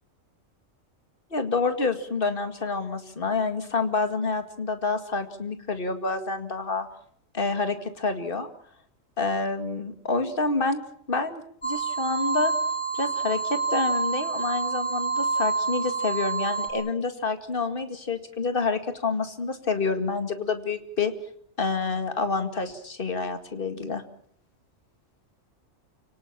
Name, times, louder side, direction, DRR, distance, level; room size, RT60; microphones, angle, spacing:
voice 1, 1.3-6.9 7.3-8.5 9.2-12.5 12.9-21.1 21.6-24.0, left 3 dB, 45° left, 8 dB, 2.3 m, -28 dB
sound 1, 11.6-16.7, right 4 dB, 60° left, 6.2 m, -27 dB
29.5 x 19.0 x 7.4 m, 0.65 s
omnidirectional pair, 1.3 m